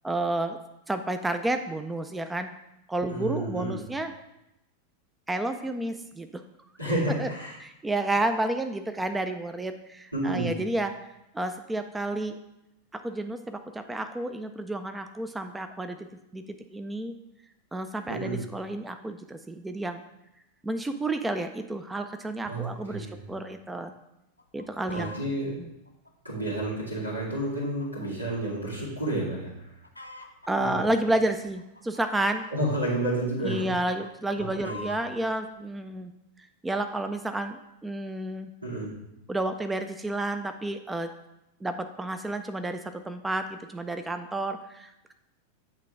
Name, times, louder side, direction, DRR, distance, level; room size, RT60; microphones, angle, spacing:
voice 1, 0.0-0.6 0.9-2.5 2.9-4.1 5.3-6.3 7.2-7.3 7.6-10.9 11.3-12.4 13.0-16.0 16.3-16.4 16.7-17.1 17.7-20.0 20.6-23.9 24.5-25.1 25.6-25.7 30.5-32.5 33.4-36.1 36.6-38.5 39.3-41.1 41.6-45.1, right 2 dB, 10° right, 8 dB, 0.4 m, -30 dB
voice 2, 3.1-3.8 6.8-7.6 10.1-10.6 18.1-18.4 22.5-23.2 24.9-25.6 26.2-29.7 30.6-30.9 32.5-33.7 34.4-34.9 38.6-39.0, right 1 dB, 85° right, -5 dB, 2.3 m, -30 dB
Chicken rooster, 24.4-25.2 25.9-28.1 28.4-28.5 29.1-29.3 29.6-30.5 31.2-33.0 33.4-35.2 35.9-36.0, left 2 dB, 85° left, 0.6 m, -45 dB
8.5 x 3.6 x 4.7 m, 0.88 s
figure-of-eight pair, 90°, 0 cm